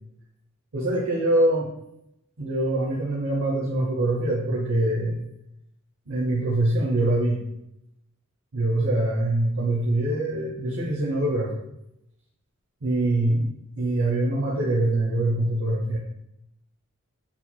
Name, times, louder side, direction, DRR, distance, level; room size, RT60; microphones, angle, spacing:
voice 1, 0.7-1.7 2.4-5.2 6.1-7.4 8.5-11.5 12.8-13.5 13.8-16.0, right 1 dB, 80° right, -4 dB, 0.7 m, -24 dB
4.3 x 4.1 x 2.2 m, 0.83 s
head